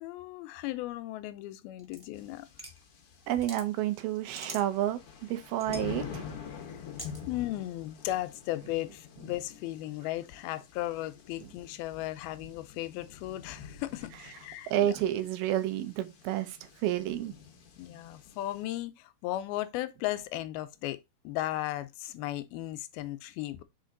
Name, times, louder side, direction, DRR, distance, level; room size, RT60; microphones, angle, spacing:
voice 1, 0.0-2.5 6.7-6.8 7.3-15.0 17.8-21.0 21.2-23.6, left 15 dB, 85° left, 2.5 m, -36 dB
sound 1, 1.8-2.8 3.2-3.7 4.1-4.9 5.4-5.9 7.0-7.2, equal, 20° right, 0.5 m, -44 dB
sound 2, 2.1-18.6, left 7 dB, 65° left, 1.4 m, -47 dB
voice 2, 3.3-5.0 5.3-6.3 14.7-17.3, right 12 dB, 85° right, 2.8 m, -30 dB
5.7 x 4.6 x 3.8 m
omnidirectional pair, 4.3 m